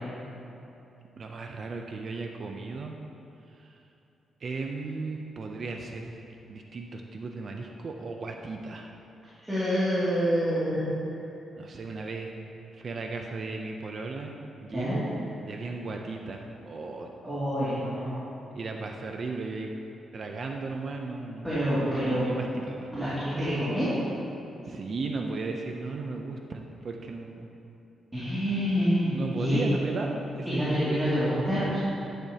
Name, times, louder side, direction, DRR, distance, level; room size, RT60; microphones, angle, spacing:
voice 1, 1.2-3.0 3.5-3.8 4.4-8.9 11.6-12.3 12.7-15.1 15.4-17.1 18.5-19.7 20.1-21.5 22.0-23.2 24.6-27.5 28.4-28.5 29.0-30.8, right 3 dB, 40° right, 2 dB, 0.5 m, -36 dB
voice 2, 9.4-10.9 14.7-15.0 17.2-18.2 21.4-22.3 22.9-23.9 28.1-29.6 30.4-31.8, equal, 10° right, -13 dB, 2.5 m, -27 dB
12.0 x 10.0 x 2.9 m, 2.8 s
wide cardioid pair, 175°, 0 cm